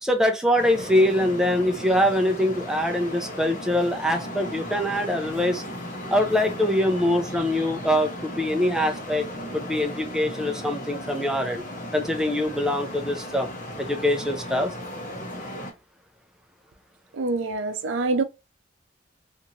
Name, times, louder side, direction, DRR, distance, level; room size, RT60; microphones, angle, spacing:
voice 1, 0.0-5.6 6.1-9.3 9.5-11.6 11.9-13.5 13.8-14.7, left 1 dB, 5° right, 0.4 m, -23 dB
Traffic noise roadway noise, 0.6-15.7, equal, 45° left, 0.8 m, -36 dB
voice 2, 17.1-18.2, right 3 dB, 70° right, 0.5 m, -25 dB
2.7 x 2.5 x 2.8 m
head